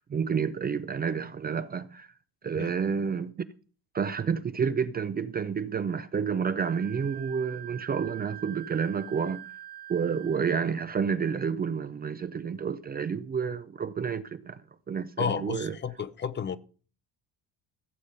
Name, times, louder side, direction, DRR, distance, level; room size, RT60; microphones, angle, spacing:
voice 1, 0.0-2.1 2.4-3.3 3.9-9.4 9.9-14.6 14.9-15.8, right 6 dB, 25° right, 0.5 m, -30 dB
Wind instrument woodwind instrument, 6.6-10.5, right 12 dB, 75° right, 1.1 m, -44 dB
voice 2, 15.2-16.6, left 7 dB, 30° left, 0.6 m, -32 dB
15.0 x 7.9 x 5.5 m
cardioid pair, 155°, 39 cm